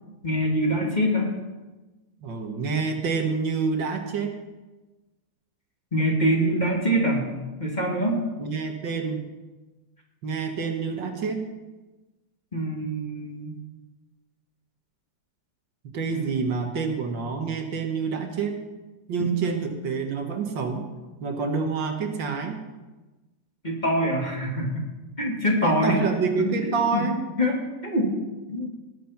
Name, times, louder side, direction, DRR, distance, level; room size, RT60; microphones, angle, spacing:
voice 1, 0.2-1.3 5.9-7.3 7.6-8.3 12.5-13.5 16.1-16.4 23.6-24.9 25.2-26.0 26.4-27.0 27.4-27.6 27.8-28.1 28.5-28.7, equal, 20° left, -1 dB, 2.4 m, -24 dB
voice 2, 2.2-4.4 8.4-9.3 10.2-11.5 15.9-18.6 19.1-20.9 21.2-22.6 25.6-27.2, right 5 dB, 70° right, 4 dB, 2.1 m, -27 dB
19.0 x 7.3 x 5.8 m, 1.2 s
omnidirectional pair, 2.1 m